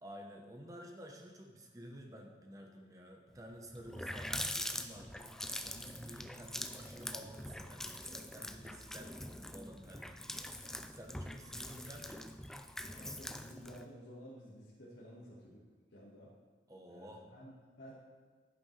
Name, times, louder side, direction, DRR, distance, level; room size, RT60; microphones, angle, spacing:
voice 1, 0.0-10.6 10.9-12.3 16.7-17.3, equal, 20° right, 2 dB, 1.0 m, -52 dB
Water tap faucet, 3.4-3.5 3.7-13.8, left 1 dB, 5° left, 0.3 m, -44 dB
voice 2, 12.9-15.6 15.9-16.3 16.9-17.9, equal, 85° left, -8 dB, 1.8 m, -53 dB
10.5 x 9.9 x 3.3 m, 1.4 s
head